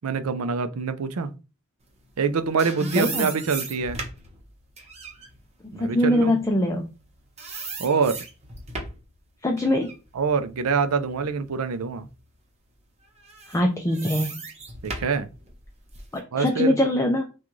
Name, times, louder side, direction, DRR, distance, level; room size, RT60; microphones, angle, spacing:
voice 1, 0.0-1.3 2.2-4.0 5.7-6.4 7.8-8.2 10.1-12.1 14.8-15.3 16.3-16.8, right 5 dB, 75° right, 0.5 m, -25 dB
sound 1, 2.2-7.1 7.4-9.1 9.6-11.5 12.0-12.1 13.2-16.2, right 3 dB, 30° right, 0.9 m, -37 dB
voice 2, 3.0-3.3 5.6-6.9 9.4-9.9 13.5-14.4 16.1-17.2, left 1 dB, 15° left, 0.5 m, -23 dB
5.9 x 2.4 x 3.1 m
head